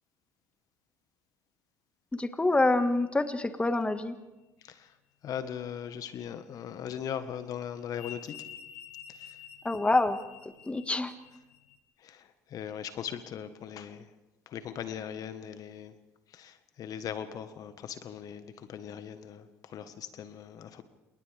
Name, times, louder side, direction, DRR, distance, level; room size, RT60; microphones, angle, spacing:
voice 1, 2.1-4.1 9.6-10.2 10.7-11.1, left 2 dB, 15° left, 9 dB, 1.9 m, -26 dB
sound 1, 2.6-3.0 7.1-11.8, left 9 dB, 80° left, 1.6 m, -49 dB
voice 2, 5.2-8.4 9.1-9.4 12.0-14.1 14.5-15.9 16.3-20.8, left 9 dB, 50° left, 10 dB, 1.6 m, -39 dB
29.0 x 28.0 x 3.6 m, 1.0 s
hypercardioid pair, 60°, 8 cm